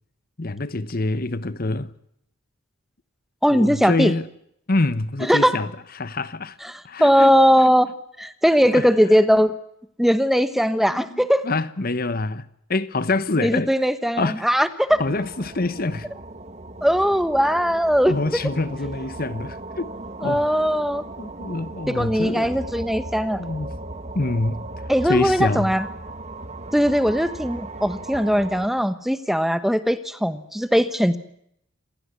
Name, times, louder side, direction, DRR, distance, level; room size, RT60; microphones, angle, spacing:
voice 1, 0.4-1.9 3.5-4.3 4.7-5.7 6.0-6.6 6.8-7.3 8.7-8.8 10.9-12.4 12.7-13.7 14.2-14.4 15.0-16.1 18.1-19.9 20.2-20.5 21.2-22.6 23.4-23.7 24.1-24.6 25.1-25.7, left 2 dB, 40° left, 1.0 m, -25 dB
voice 2, 3.4-4.1 5.2-5.6 6.6-7.9 8.2-9.6 10.0-11.5 13.4-15.0 16.8-18.4 20.2-21.0 21.9-23.4 24.9-25.9 26.7-31.2, equal, ahead, 1.1 m, -19 dB
sound 1, 14.9-28.7, right 2 dB, 30° right, 1.7 m, -37 dB
28.0 x 17.0 x 9.6 m
head